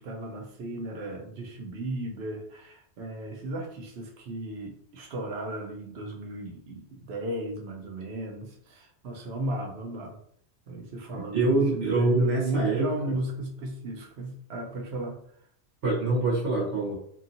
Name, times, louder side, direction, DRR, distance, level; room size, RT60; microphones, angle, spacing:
voice 1, 0.0-10.2 10.7-15.2, right 1 dB, 70° right, 1 dB, 0.9 m, -35 dB
voice 2, 11.1-12.9 15.8-16.9, right 2 dB, 85° right, -4 dB, 1.3 m, -25 dB
2.8 x 2.6 x 2.5 m, 0.65 s
omnidirectional pair, 1.1 m